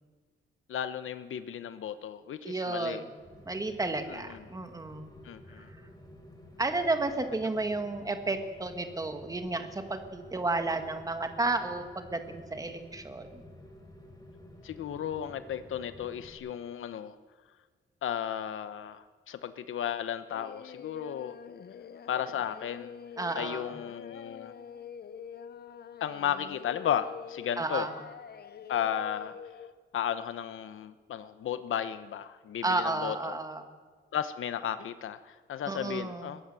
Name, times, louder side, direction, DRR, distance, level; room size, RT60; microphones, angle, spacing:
voice 1, 0.7-3.0 4.1-4.4 5.2-5.7 14.6-17.2 18.0-21.3 22.1-22.9 23.3-24.5 26.0-27.9 28.7-29.3 29.9-33.4 34.1-36.4, left 9 dB, 75° left, 11 dB, 1.0 m, -34 dB
voice 2, 2.4-3.1 3.5-5.1 5.6-5.7 6.6-13.5 23.2-23.8 27.6-27.9 32.6-33.7 35.7-36.4, right 2 dB, 15° right, 7 dB, 1.8 m, -32 dB
Rain, 3.2-16.3, left 1 dB, 20° left, 3.6 m, -51 dB
Singing, 20.3-29.7, left 7 dB, 50° left, 0.9 m, -46 dB
22.0 x 17.5 x 7.7 m, 1.4 s
wide cardioid pair, 175°, 21 cm